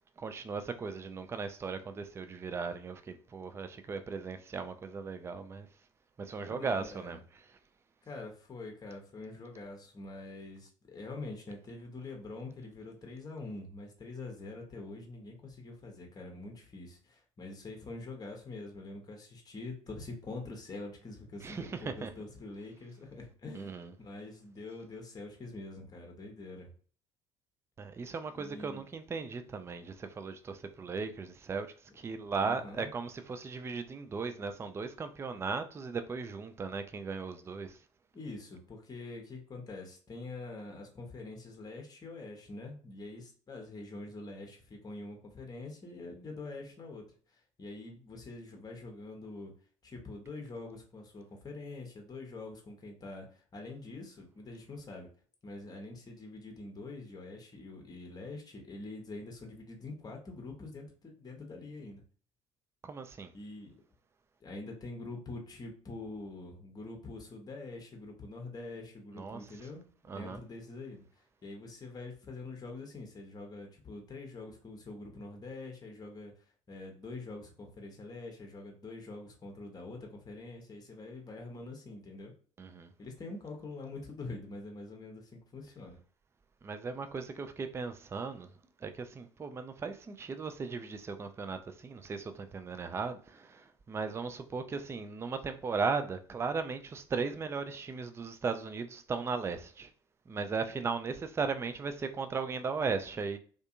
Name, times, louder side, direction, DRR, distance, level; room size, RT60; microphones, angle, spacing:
voice 1, 0.2-5.7 6.2-7.2 21.4-22.1 23.5-23.9 27.8-31.7 32.0-37.8 62.8-63.3 69.2-69.4 70.1-70.4 82.6-82.9 86.6-88.5 88.8-99.9 100.3-103.4, right 4 dB, 15° right, 0.3 m, -37 dB
voice 2, 6.4-7.2 8.1-26.7 28.3-28.8 32.4-32.9 38.1-49.5 49.8-55.1 55.4-62.0 63.3-63.7 64.4-71.0 71.4-82.3 83.0-86.0, left 2 dB, 25° left, 0.8 m, -45 dB
2.6 x 2.4 x 2.4 m
figure-of-eight pair, 55°, 15 cm